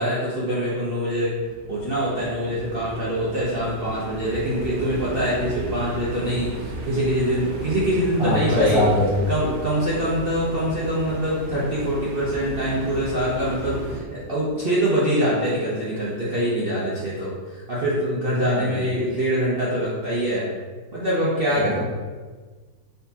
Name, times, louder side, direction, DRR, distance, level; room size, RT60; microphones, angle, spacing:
voice 1, 0.0-1.3 1.7-8.8 9.3-20.5 20.9-21.8, equal, 50° right, -8 dB, 0.6 m, -24 dB
sound 1, 1.2-14.0, right 2 dB, 75° right, 1.3 m, -35 dB
voice 2, 8.2-9.3 18.4-19.1 21.6-21.8, left 2 dB, 5° right, -7 dB, 0.4 m, -23 dB
4.2 x 3.8 x 2.8 m, 1.4 s
omnidirectional pair, 1.9 m